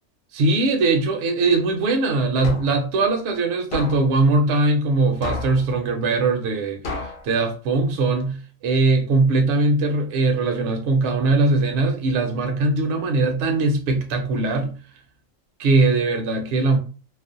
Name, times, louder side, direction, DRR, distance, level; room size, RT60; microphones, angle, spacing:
voice 1, 0.3-14.8 15.6-16.8, right 3 dB, 65° right, 0.8 m, -21 dB
sound 1, 2.4-2.9 3.7-4.1 5.2-5.7 6.8-7.2, left 2 dB, 55° left, 0.6 m, -30 dB
2.4 x 2.0 x 2.5 m
omnidirectional pair, 1.3 m